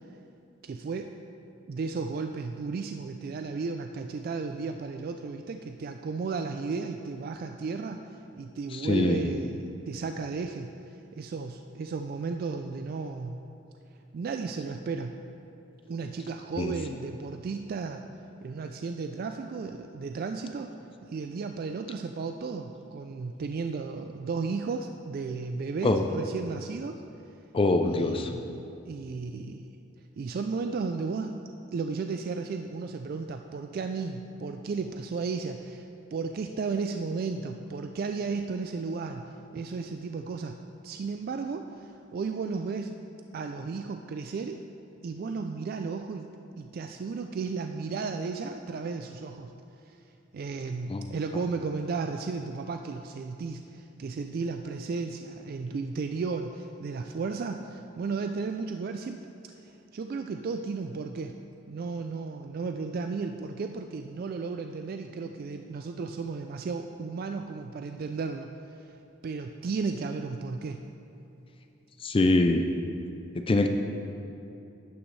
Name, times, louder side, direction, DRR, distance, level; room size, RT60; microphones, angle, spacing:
voice 1, 0.6-1.1 1.7-8.0 8.3-13.4 14.1-15.1 15.9-18.0 18.4-20.7 21.0-27.0 27.8-29.7 30.2-31.4 31.7-40.6 40.8-42.9 43.3-44.6 45.0-46.3 46.6-49.5 49.9-50.0 50.3-59.2 59.4-61.4 61.7-68.5 68.8-68.9 69.2-70.8, right 4 dB, 50° right, 6 dB, 0.3 m, -34 dB
voice 2, 8.7-9.3 16.6-16.7 25.8-26.0 27.5-28.3 50.9-51.0 72.0-72.7 73.5-73.7, left 2 dB, 30° left, 6 dB, 0.4 m, -24 dB
11.5 x 8.7 x 3.2 m, 2.8 s
head